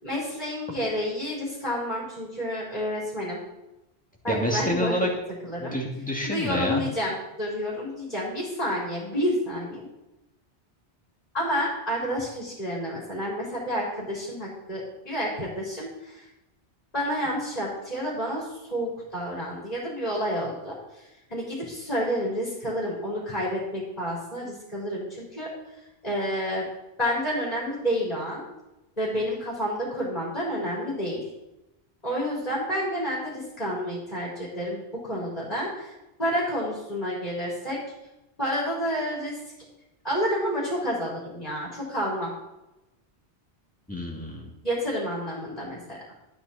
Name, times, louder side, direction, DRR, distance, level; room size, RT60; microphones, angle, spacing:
voice 1, 0.0-3.4 4.2-5.0 5.4-5.7 6.2-9.9 11.3-16.3 16.9-25.5 26.0-26.6 27.0-28.4 29.0-31.3 32.0-37.8 38.4-39.4 40.0-42.3 44.6-46.0, equal, 40° left, -6 dB, 4.1 m, -29 dB
voice 2, 4.3-5.1 5.6-6.8 43.9-44.5, equal, 5° left, -3 dB, 2.6 m, -28 dB
12.5 x 10.0 x 4.4 m, 0.95 s
omnidirectional pair, 1.1 m